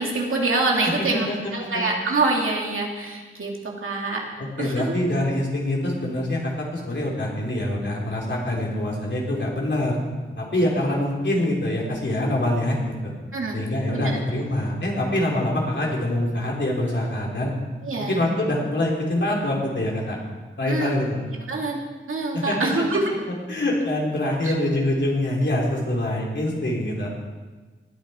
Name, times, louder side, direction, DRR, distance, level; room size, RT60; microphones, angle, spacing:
voice 1, 0.0-4.2 4.6-4.9 13.3-13.6 13.9-14.2 17.8-18.2 20.7-20.9 21.5-21.8 22.1-23.1 24.4-24.5, right 2 dB, 80° right, 0 dB, 2.4 m, -25 dB
voice 2, 1.0-1.3 1.7-1.8 4.4-10.0 10.4-13.1 13.5-17.5 18.0-20.2 20.6-21.2 22.3-22.7 23.5-27.1, left 1 dB, 60° left, -3 dB, 3.5 m, -25 dB
19.0 x 9.9 x 4.3 m, 1.3 s
wide cardioid pair, 85°, 21 cm